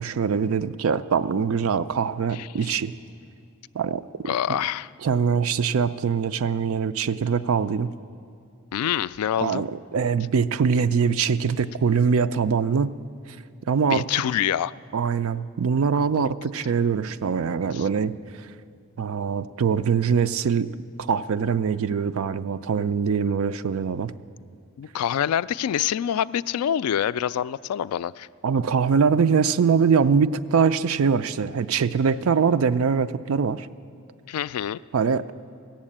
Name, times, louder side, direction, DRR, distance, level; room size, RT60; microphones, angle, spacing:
voice 1, 0.0-2.9 3.7-4.0 4.5-4.6 5.0-7.9 9.4-12.9 13.7-14.0 14.9-18.1 19.0-20.7 21.0-24.1 28.4-33.7 34.9-35.3, right 6 dB, 65° right, 13 dB, 0.4 m, -23 dB
voice 2, 4.3-4.9 8.7-9.6 13.9-14.7 16.1-16.3 17.7-17.9 24.8-28.3 34.3-34.8, left 10 dB, 85° left, 17 dB, 0.3 m, -26 dB
16.0 x 7.4 x 8.7 m, 2.5 s
head